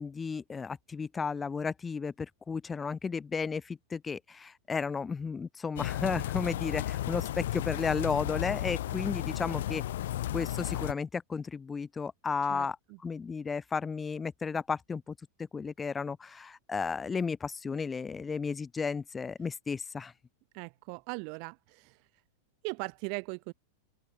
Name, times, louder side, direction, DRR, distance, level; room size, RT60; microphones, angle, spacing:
voice 1, 0.0-9.8 10.3-12.8 13.0-15.1 15.5-20.1, left 5 dB, 15° left, 0.8 m, -33 dB
sound 1, 5.8-10.9, left 13 dB, 55° left, 0.4 m, -33 dB
voice 2, 20.5-22.0 22.6-23.5, right 40 dB or more, 45° right, 0.5 m, -39 dB
open air
figure-of-eight pair, 90°, 0 cm